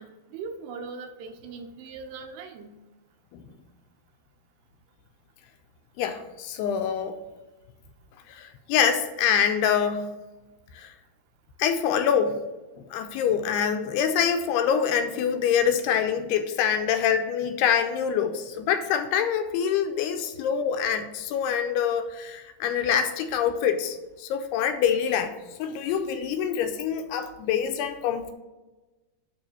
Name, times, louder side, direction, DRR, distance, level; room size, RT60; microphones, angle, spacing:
voice 1, 0.0-2.8, right 4 dB, 85° right, 6 dB, 2.8 m, -40 dB
voice 2, 6.0-7.2 8.3-10.1 10.7-10.9 11.6-12.4 12.9-28.3, left 8 dB, 80° left, 8 dB, 2.5 m, -25 dB
9.4 x 3.2 x 6.7 m, 1.1 s
omnidirectional pair, 4.9 m